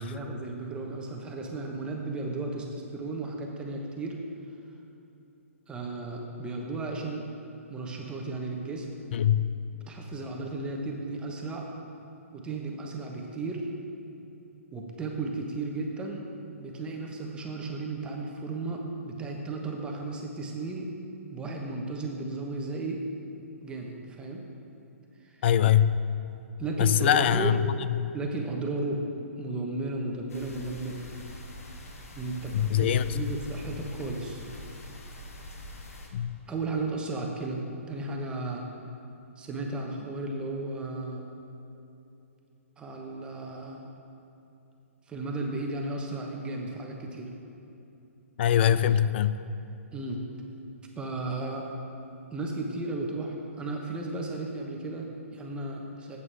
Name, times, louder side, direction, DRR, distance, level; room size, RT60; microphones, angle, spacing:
voice 1, 0.0-2.7 2.9-4.2 5.7-7.3 7.7-8.9 9.9-11.7 12.3-13.7 14.7-16.2 16.6-20.9 21.3-23.0 23.6-24.4 25.2-25.4 26.6-27.5 28.1-29.0 29.4-31.0 32.2-34.4 36.5-37.6 37.9-38.7 39.4-41.2 42.8-43.9 45.1-47.3 49.9-50.2 51.0-51.7 52.3-56.2, right 2 dB, 10° right, 0 dB, 1.0 m, -34 dB
voice 2, 9.1-9.5 25.4-25.9 26.8-28.1 32.5-33.2 36.1-36.4 48.4-49.4, left 10 dB, 50° left, 14 dB, 0.4 m, -23 dB
sound 1, 30.3-36.1, left 1 dB, 80° left, 1.4 m, -43 dB
12.0 x 8.2 x 3.4 m, 2.9 s
hypercardioid pair, 135°, 8 cm